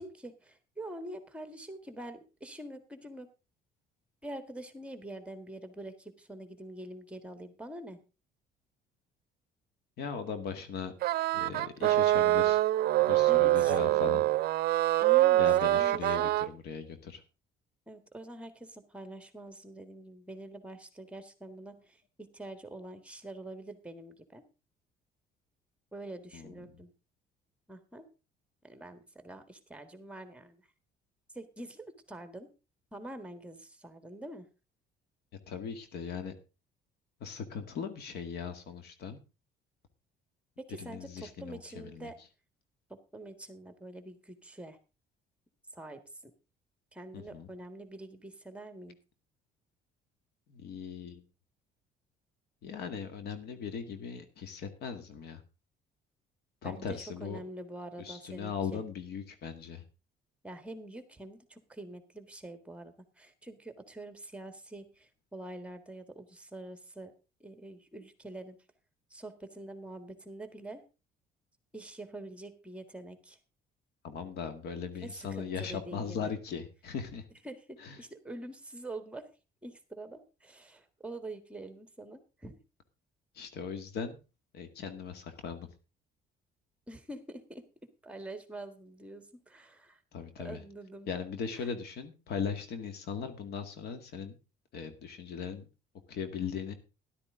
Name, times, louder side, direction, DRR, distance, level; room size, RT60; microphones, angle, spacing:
voice 1, 0.0-3.3 4.2-8.0 13.3-14.3 15.0-16.3 17.9-24.4 25.9-26.9 27.7-28.0 28.6-30.6 31.3-32.5 32.9-34.5 40.6-42.2 42.9-44.8 45.7-46.3 46.9-49.0 56.6-58.8 60.4-67.1 67.4-68.6 69.1-70.8 71.7-73.4 74.7-76.3 77.4-79.3 79.6-82.6 86.9-87.6 88.0-90.0 90.4-91.1 91.6-91.7, right 1 dB, 5° right, 9 dB, 1.7 m, -45 dB
voice 2, 10.0-10.9 11.3-12.6 12.9-14.2 15.4-17.2 26.3-26.8 35.5-36.3 37.2-39.2 40.8-42.1 47.1-47.5 50.5-51.2 52.6-55.4 56.6-57.4 58.0-59.8 74.0-77.2 77.8-78.0 83.3-84.2 84.5-85.7 90.1-90.6 91.1-94.4 94.7-95.7 96.1-96.7, left 6 dB, 70° left, 9 dB, 2.0 m, -39 dB
sound 1, 11.0-16.5, right 15 dB, 65° right, 0.5 m, -25 dB
13.0 x 11.5 x 3.8 m, 0.31 s
cardioid pair, 110°, 17 cm